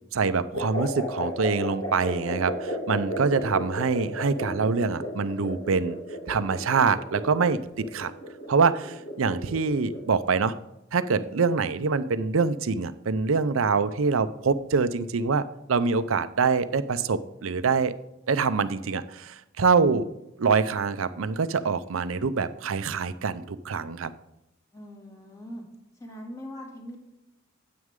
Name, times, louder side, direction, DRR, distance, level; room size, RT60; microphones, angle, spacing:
voice 1, 0.1-6.0 6.3-8.1 8.5-10.5 10.9-15.4 15.7-17.9 18.3-20.1 20.4-24.1, right 5 dB, 80° right, 13 dB, 0.6 m, -25 dB
sound 1, 0.5-10.1, equal, 70° left, 2.9 m, -34 dB
voice 2, 24.7-25.6 25.9-27.0, equal, 15° left, 0 dB, 2.4 m, -41 dB
9.5 x 8.5 x 3.7 m, 0.88 s
head